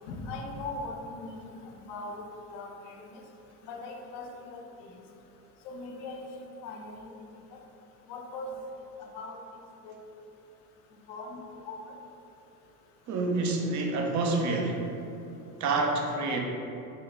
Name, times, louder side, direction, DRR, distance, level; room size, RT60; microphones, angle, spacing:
voice 1, 0.1-1.5 1.9-3.2 3.7-4.9 5.6-7.1 8.1-8.5 9.0-9.4 9.8-10.0 11.1-11.8, left 2 dB, 55° left, 2 dB, 0.7 m, -40 dB
voice 2, 13.1-14.9 15.6-16.4, right 3 dB, 40° right, 2 dB, 0.6 m, -28 dB
4.0 x 2.3 x 3.2 m, 2.8 s
hypercardioid pair, 80°, 49 cm